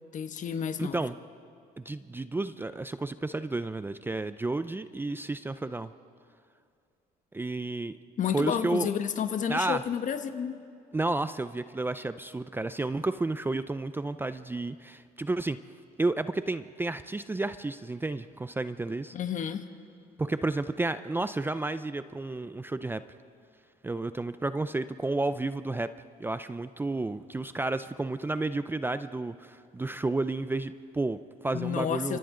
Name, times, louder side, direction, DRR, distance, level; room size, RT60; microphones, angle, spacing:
voice 1, 0.1-1.0 8.2-10.5 19.1-19.6 31.5-32.2, left 8 dB, 50° left, 9 dB, 1.2 m, -30 dB
voice 2, 0.8-1.1 1.8-5.9 7.3-8.0 8.3-8.9 9.5-9.8 10.9-15.6 16.0-19.1 20.2-23.0 23.8-25.9 26.2-32.2, right 2 dB, 10° right, 12 dB, 0.5 m, -31 dB
30.0 x 26.0 x 3.8 m, 2.3 s
cardioid pair, 110°, 17 cm